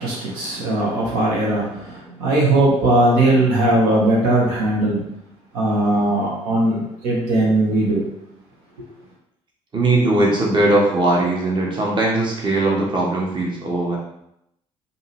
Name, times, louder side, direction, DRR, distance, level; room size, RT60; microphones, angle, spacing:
voice 1, 0.0-5.0 5.5-8.0, right 1 dB, 60° right, -4 dB, 1.2 m, -19 dB
voice 2, 9.7-14.0, right 2 dB, 30° right, -2 dB, 1.2 m, -19 dB
5.2 x 2.7 x 3.1 m, 0.78 s
figure-of-eight pair, 50°, 16 cm